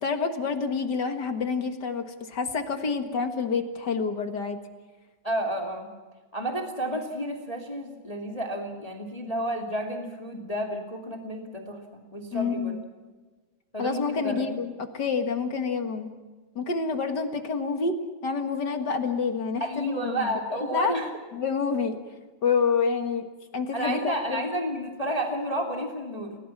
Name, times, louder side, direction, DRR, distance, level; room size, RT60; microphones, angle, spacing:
voice 1, 0.0-4.6 12.3-12.8 13.8-16.1 16.5-18.0 18.2-20.9 21.3-22.0 22.4-23.3 23.5-24.4, left 5 dB, 45° left, 6 dB, 1.6 m, -28 dB
voice 2, 5.2-5.9 6.3-12.7 13.7-14.5 19.6-21.1 23.7-26.4, right 1 dB, 10° left, 2 dB, 2.2 m, -31 dB
30.0 x 18.5 x 6.0 m, 1.3 s
omnidirectional pair, 3.9 m